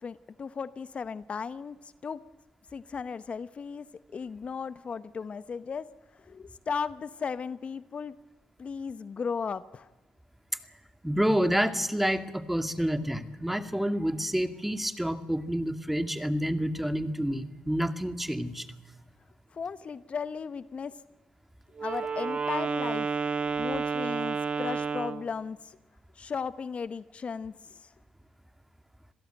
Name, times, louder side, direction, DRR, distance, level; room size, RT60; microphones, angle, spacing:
voice 1, 0.0-1.8 2.0-2.2 2.7-3.9 4.1-5.9 6.2-8.1 8.6-9.9 19.5-20.9 21.8-23.1 23.4-25.8 26.2-27.9, left 5 dB, 50° left, 15 dB, 0.9 m, -36 dB
voice 2, 11.0-18.7, equal, 5° right, 9 dB, 2.3 m, -28 dB
Wind instrument woodwind instrument, 21.8-25.3, right 5 dB, 45° right, 1.5 m, -30 dB
27.0 x 16.5 x 9.1 m, 1.2 s
supercardioid pair, 55°, 3 cm